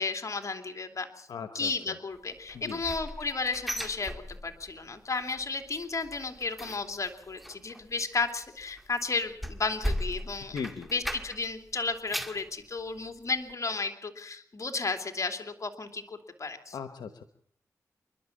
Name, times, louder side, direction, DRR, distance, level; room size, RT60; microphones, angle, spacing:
voice 1, 0.0-1.3 1.5-10.6 10.9-16.8, left 4 dB, 50° left, 6 dB, 2.9 m, -33 dB
voice 2, 1.3-2.0 2.5-2.8 10.5-10.9 16.7-17.2, left 6 dB, 90° left, 10 dB, 1.0 m, -38 dB
sound 1, 2.5-4.8 5.1-5.5 5.8-11.6 11.9-12.5 13.0-13.1 13.5-13.6, equal, ahead, 2.3 m, -37 dB
28.0 x 12.0 x 8.6 m, 0.64 s
cardioid pair, 45°, 7 cm